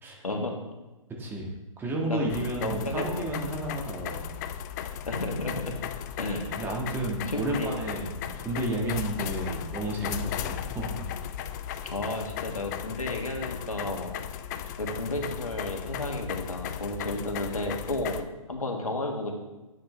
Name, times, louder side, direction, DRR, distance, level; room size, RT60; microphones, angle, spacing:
voice 1, 0.2-0.6 2.1-2.3 2.6-3.3 5.1-5.8 6.2-6.5 7.3-7.7 11.9-14.1 14.8-18.2 18.5-19.3, left 2 dB, 90° left, 2 dB, 1.6 m, -32 dB
voice 2, 1.2-1.5 1.8-4.3 6.6-11.0, right 1 dB, 10° right, -1 dB, 1.6 m, -32 dB
sound 1, 2.3-18.2, left 10 dB, 30° left, 0.4 m, -36 dB
10.5 x 6.5 x 3.3 m, 1.1 s
hypercardioid pair, 130°, 18 cm